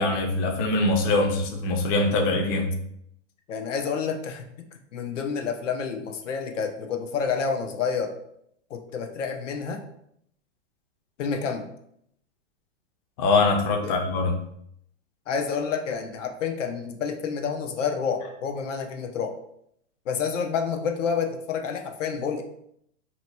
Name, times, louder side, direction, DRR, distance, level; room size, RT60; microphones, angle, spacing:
voice 1, 0.0-2.7 13.2-14.4, left 2 dB, 30° left, 2 dB, 0.5 m, -23 dB
voice 2, 3.5-4.4 4.9-8.1 8.7-9.8 11.2-11.6 13.8-14.0 15.3-19.3 20.1-22.4, left 6 dB, 80° left, 4 dB, 0.7 m, -29 dB
2.9 x 2.2 x 4.1 m, 0.72 s
hypercardioid pair, 140°, 36 cm